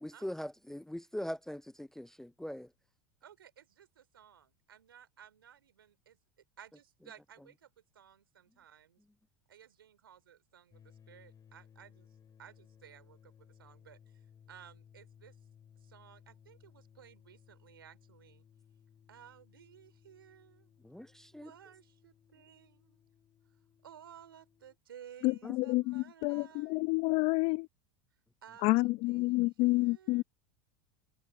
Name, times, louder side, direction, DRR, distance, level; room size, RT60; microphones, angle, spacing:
voice 1, 0.0-2.7 20.8-21.5 25.4-25.6, equal, 5° left, 0.3 m, -41 dB
voice 2, 3.2-6.2 6.6-9.0 9.5-12.1 12.4-14.2 14.5-15.4 15.8-18.4 19.1-20.7 21.4-23.0 23.8-26.9 28.4-30.2, right 9 dB, 90° right, 3.2 m, -56 dB
sound 1, 10.7-24.8, left 8 dB, 30° left, 5.3 m, -62 dB
voice 3, 25.2-27.7 28.6-30.2, left 23 dB, 55° left, 0.8 m, -29 dB
hypercardioid pair, 90°, 12 cm